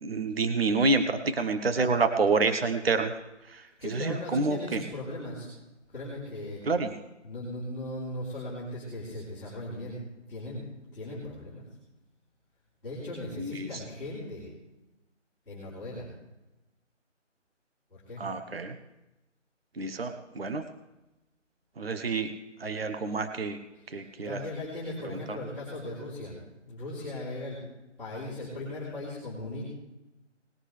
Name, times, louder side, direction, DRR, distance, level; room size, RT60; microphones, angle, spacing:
voice 1, 0.0-3.1 3.5-3.6 3.9-4.8 6.7-6.9 13.4-13.7 18.2-18.8 19.8-20.6 21.8-22.3 22.6-23.6 23.9-24.4 25.0-25.4, right 3 dB, 50° right, 8 dB, 1.1 m, -28 dB
voice 2, 3.8-5.5 5.9-6.6 7.2-10.0 10.3-10.6 10.9-11.6 12.8-14.5 15.4-16.1 17.9-18.2 23.7-27.6 28.0-29.6, left 1 dB, 5° left, -15 dB, 3.4 m, -38 dB
20.0 x 11.5 x 3.3 m, 0.97 s
figure-of-eight pair, 165°, 37 cm